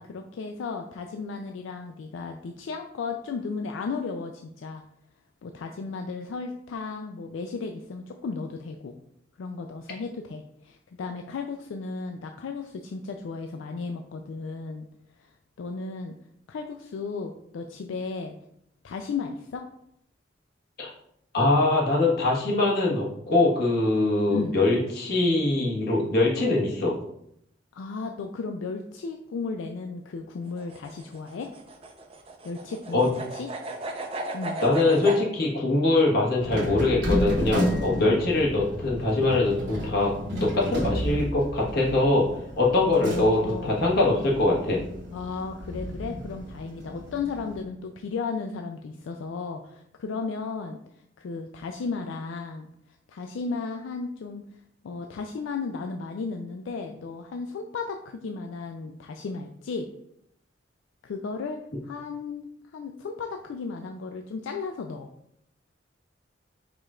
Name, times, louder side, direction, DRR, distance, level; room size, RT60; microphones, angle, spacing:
voice 1, 0.0-4.8 5.4-9.0 9.4-14.9 15.2-15.3 15.6-16.1 16.5-18.4 18.8-19.6 24.3-24.6 27.7-31.5 32.4-33.5 34.3-34.6 43.0-43.8 45.1-50.8 51.2-52.7 53.1-54.4 54.8-59.9 61.0-65.1, left 4 dB, 80° left, 4 dB, 0.4 m, -34 dB
voice 2, 21.3-26.9 32.9-33.1 34.6-40.1 40.4-42.2 42.6-44.8, left 2 dB, 55° left, -3 dB, 1.3 m, -23 dB
sound 1, 30.5-35.2, right 2 dB, 30° right, 0.5 m, -35 dB
sound 2, 36.4-47.6, equal, 65° right, 1.1 m, -32 dB
4.9 x 2.4 x 4.2 m, 0.74 s
head